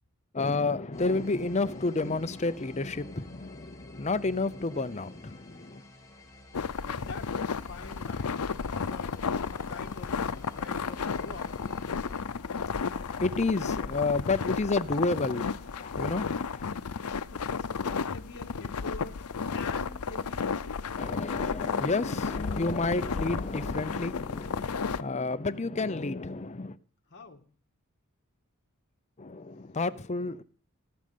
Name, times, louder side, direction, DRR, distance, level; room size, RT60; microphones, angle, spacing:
voice 1, 0.3-5.8 11.9-16.7 21.0-26.8 29.2-30.4, left 3 dB, 30° left, 0.7 m, -31 dB
sound 1, 0.9-12.2, left 2 dB, 15° left, 1.9 m, -52 dB
sound 2, 6.5-25.0, left 5 dB, 90° left, 0.6 m, -33 dB
voice 2, 6.8-9.2 9.5-11.6 17.3-20.7 27.1-27.4, left 3 dB, 50° left, 1.7 m, -46 dB
17.5 x 6.5 x 9.4 m
head